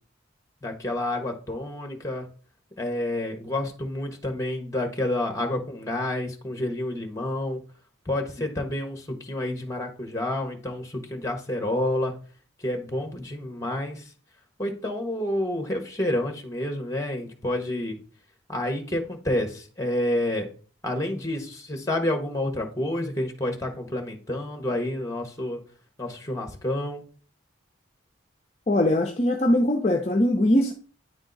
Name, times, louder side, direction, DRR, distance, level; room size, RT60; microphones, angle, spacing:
voice 1, 0.6-2.2 2.8-7.6 8.1-12.1 12.6-14.0 14.6-18.0 18.5-20.5 20.8-25.6 26.0-27.0, left 1 dB, 15° left, 4 dB, 1.0 m, -29 dB
voice 2, 28.7-30.7, left 1 dB, 35° left, 3 dB, 0.5 m, -21 dB
9.4 x 3.6 x 3.9 m, 0.40 s
head